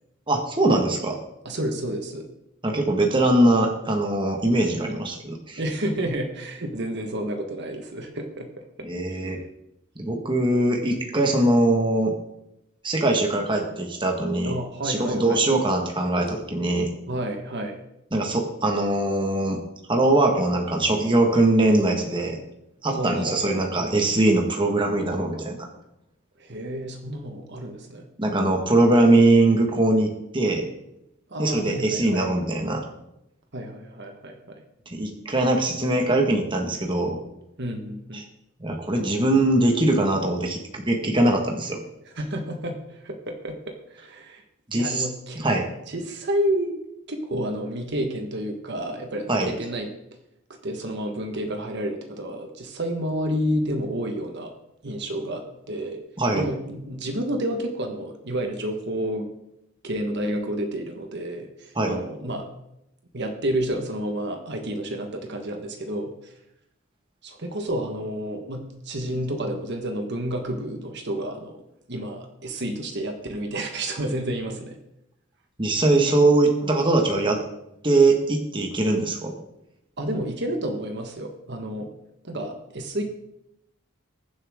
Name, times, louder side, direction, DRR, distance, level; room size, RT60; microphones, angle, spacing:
voice 1, 0.3-1.1 2.6-5.6 8.8-9.4 10.0-12.1 12.8-14.6 14.8-16.9 18.1-19.6 19.9-22.4 22.8-25.6 28.2-30.7 31.4-32.8 34.9-37.2 38.1-38.2 38.6-41.8 44.7-45.1 45.4-45.7 49.3-49.5 56.2-56.5 61.7-62.0 75.6-77.4 77.8-79.3, right 2 dB, 25° right, 1 dB, 1.5 m, -21 dB
voice 2, 1.4-2.2 5.6-8.5 14.4-15.4 17.1-17.8 22.9-23.6 26.4-28.1 31.3-32.3 33.5-34.4 37.6-38.2 42.1-43.6 43.9-44.4 44.7-45.4 45.9-46.7 47.1-49.9 50.6-54.5 54.8-56.0 56.3-59.3 59.8-62.5 63.1-66.3 67.2-71.6 71.9-74.8 80.0-81.9 82.2-83.0, right 1 dB, 55° right, 4 dB, 1.4 m, -30 dB
21.0 x 7.4 x 3.7 m, 0.85 s
head